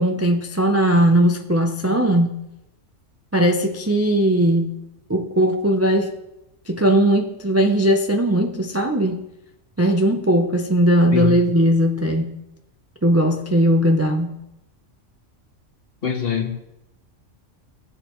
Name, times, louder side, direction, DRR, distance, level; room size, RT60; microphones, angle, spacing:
voice 1, 0.0-2.5 3.3-4.8 5.1-6.1 6.7-9.2 9.8-12.4 13.0-14.4, right 1 dB, 20° right, 4 dB, 0.4 m, -18 dB
voice 2, 16.0-16.6, left 7 dB, 50° left, 3 dB, 1.5 m, -23 dB
19.0 x 7.3 x 3.1 m, 0.90 s
omnidirectional pair, 1.3 m